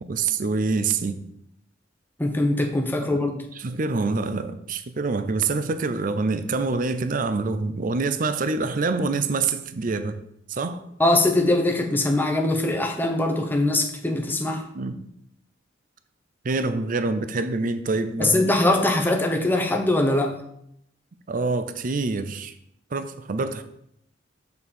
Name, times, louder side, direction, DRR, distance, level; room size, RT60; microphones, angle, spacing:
voice 1, 0.1-1.2 3.5-10.2 10.5-10.8 14.7-14.9 16.4-18.4 21.3-22.5 22.9-23.6, right 3 dB, 45° right, 0.5 m, -26 dB
voice 2, 2.2-3.5 11.0-14.7 18.2-20.4, left 2 dB, 10° left, 0.8 m, -22 dB
7.0 x 6.7 x 4.4 m
head